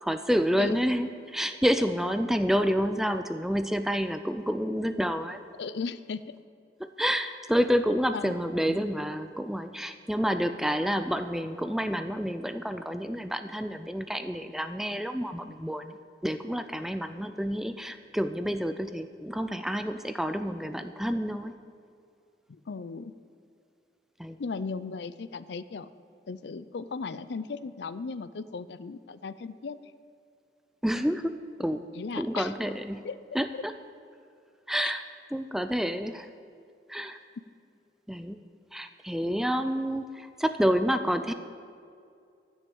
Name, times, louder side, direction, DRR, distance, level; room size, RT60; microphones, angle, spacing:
voice 1, 0.0-5.4 7.0-16.0 16.2-21.5 24.2-24.4 30.8-31.9 32.2-33.1 33.3-33.7 34.7-35.0 35.3-36.3 36.9-37.2 38.1-38.4 38.7-41.3, equal, ahead, 9 dB, 0.4 m, -29 dB
voice 2, 5.6-6.2 8.1-8.3 8.7-8.8 22.5-23.1 24.4-25.9 26.3-29.8 31.9-32.5 33.0-33.2 34.8-34.9, left 4 dB, 70° left, 14 dB, 0.5 m, -36 dB
13.5 x 6.3 x 8.6 m, 2.4 s
head